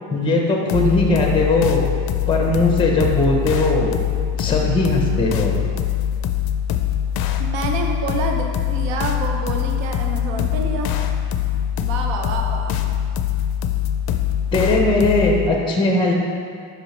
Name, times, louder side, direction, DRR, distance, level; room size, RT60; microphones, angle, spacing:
voice 1, 0.1-1.9 2.3-3.9 4.4-5.6 14.5-16.1, left 2 dB, 10° left, 0 dB, 0.7 m, -19 dB
sound 1, 0.7-15.5, left 10 dB, 50° left, 0.5 m, -23 dB
voice 2, 7.4-10.9 11.8-12.7, right 4 dB, 65° right, 2 dB, 0.8 m, -28 dB
6.2 x 4.9 x 3.3 m, 2.2 s
cardioid pair, 110°, 48 cm